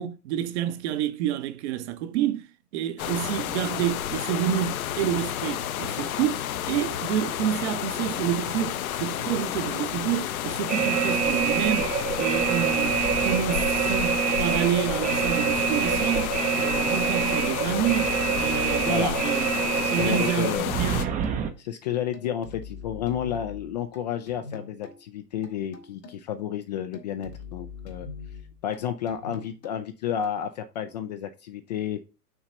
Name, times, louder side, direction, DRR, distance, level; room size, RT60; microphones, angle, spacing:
voice 1, 0.0-6.4 6.7-19.5 19.9-21.1, right 11 dB, 45° right, 0.9 m, -29 dB
sound 1, 3.0-21.0, left 11 dB, 60° left, 0.7 m, -31 dB
sound 2, 10.7-21.5, right 8 dB, 15° right, 0.6 m, -26 dB
sound 3, 12.8-14.4 14.9-15.4 15.8-16.7 17.3-19.2 19.7-20.2 20.6-21.5 22.1-24.0 24.3-25.0 25.4-26.3 26.9-28.8 29.1-29.8 30.2-30.3, left 5 dB, 85° left, 2.1 m, -43 dB
voice 2, 19.8-21.0 21.6-28.1 28.6-32.0, left 9 dB, 30° left, 0.4 m, -31 dB
6.0 x 4.0 x 5.5 m
hypercardioid pair, 110°, 48 cm